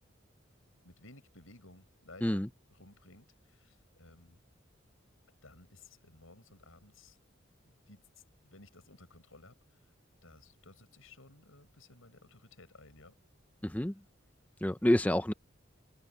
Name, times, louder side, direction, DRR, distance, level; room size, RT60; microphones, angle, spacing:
voice 1, 0.8-2.4 2.7-4.4 5.4-7.2 7.6-8.1 8.5-9.9 10.2-13.2, left 2 dB, 85° left, 6.5 m, -57 dB
voice 2, 13.6-13.9 14.6-15.3, left 1 dB, 5° left, 0.5 m, -28 dB
head